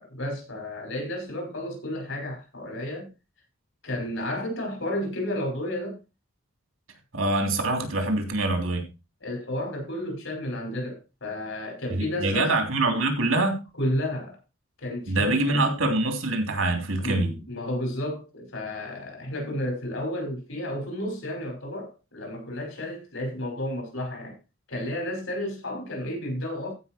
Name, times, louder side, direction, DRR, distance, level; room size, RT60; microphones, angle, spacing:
voice 1, 0.0-3.1 3.8-6.0 9.2-12.5 13.8-14.4 14.8-15.7 17.0-24.4 24.7-26.7, left 1 dB, 65° left, 5.3 m, -32 dB
voice 2, 7.1-8.8 11.9-13.6 15.1-17.3, right 2 dB, 75° right, 3.3 m, -24 dB
15.0 x 5.8 x 4.4 m
head